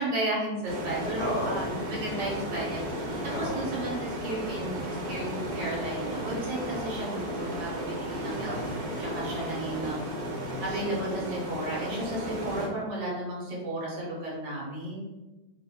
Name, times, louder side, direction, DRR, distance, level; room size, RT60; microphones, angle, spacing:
voice 1, 0.0-3.0 3.4-8.6 9.0-10.0 10.6-15.0, right 1 dB, 90° right, -4 dB, 1.5 m, -33 dB
sound 1, 0.7-12.7, equal, 55° right, 0.8 m, -34 dB
voice 2, 1.2-1.6 3.3-3.6 8.3-8.8 10.2-11.0, left 1 dB, 65° left, -3 dB, 0.7 m, -36 dB
3.4 x 2.1 x 2.2 m, 1.1 s
omnidirectional pair, 1.8 m